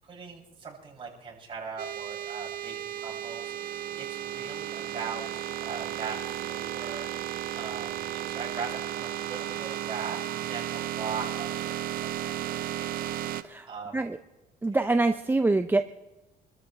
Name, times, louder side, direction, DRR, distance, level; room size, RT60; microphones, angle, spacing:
voice 1, 0.0-7.1 7.5-14.0 14.7-14.8, right 5 dB, 30° right, -4 dB, 7.6 m, -40 dB
sound 1, 1.8-13.4, right 11 dB, 60° right, 0.8 m, -34 dB
voice 2, 14.6-15.8, right 2 dB, 10° right, 8 dB, 0.6 m, -24 dB
27.0 x 13.5 x 3.4 m, 1.1 s
cardioid pair, 110°, 17 cm